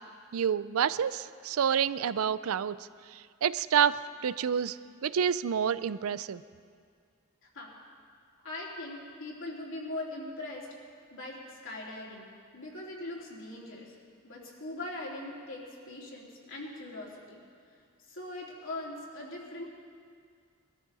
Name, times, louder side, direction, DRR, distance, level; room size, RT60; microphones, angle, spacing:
voice 1, 0.3-2.8 3.1-4.8 5.0-6.4, right 8 dB, 85° right, 16 dB, 0.4 m, -28 dB
voice 2, 8.4-10.7 11.1-13.9 14.2-17.4 18.1-19.7, left 2 dB, 65° left, -4 dB, 3.2 m, -41 dB
21.0 x 13.5 x 4.1 m, 2.2 s
head